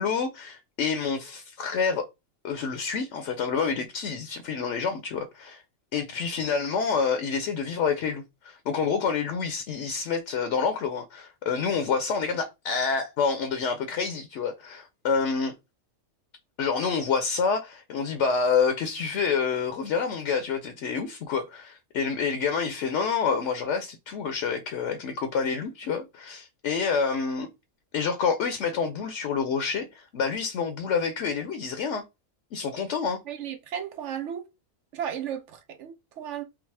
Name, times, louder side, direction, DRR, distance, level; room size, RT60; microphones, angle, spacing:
voice 1, 0.0-2.1 2.4-5.6 5.9-15.5 16.6-27.5 27.9-32.0 32.5-33.2, left 5 dB, 70° left, 0.9 m, -28 dB
voice 2, 33.3-34.4 34.9-36.4, right 9 dB, 70° right, 1.1 m, -34 dB
5.8 x 2.0 x 3.2 m
omnidirectional pair, 1.3 m